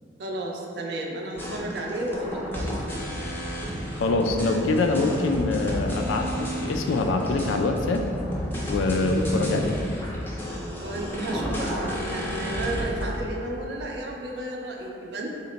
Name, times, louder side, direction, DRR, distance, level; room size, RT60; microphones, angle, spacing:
voice 1, 0.2-3.0 10.8-15.3, right 1 dB, 60° right, 0 dB, 0.4 m, -33 dB
sound 1, 1.4-13.2, equal, 10° left, 0.4 m, -31 dB
voice 2, 3.9-8.0 8.7-9.8, left 3 dB, 90° left, 5 dB, 0.3 m, -24 dB
3.9 x 2.1 x 3.8 m, 2.5 s
head